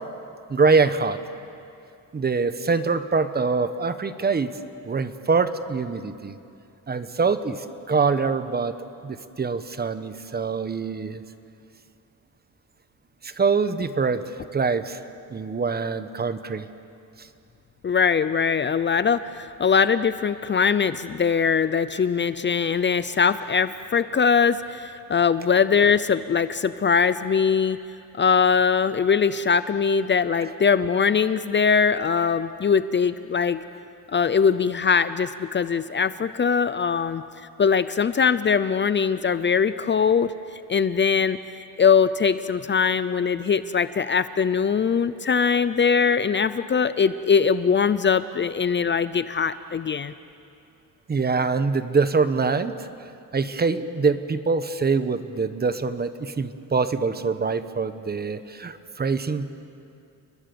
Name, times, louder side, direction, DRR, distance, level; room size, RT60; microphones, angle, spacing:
voice 1, 0.5-1.2 2.1-4.6 4.8-6.3 6.9-8.8 9.0-11.2 13.2-15.0 15.3-16.7 17.2-17.3 51.1-52.9 53.3-59.6, right 4 dB, 30° right, 11 dB, 1.1 m, -24 dB
voice 2, 17.8-27.8 28.1-33.6 34.1-37.2 37.6-40.3 40.7-41.4 41.8-50.1, left 6 dB, 30° left, 14 dB, 0.6 m, -21 dB
29.5 x 21.0 x 7.0 m, 2.6 s
cardioid pair, 110°, 35 cm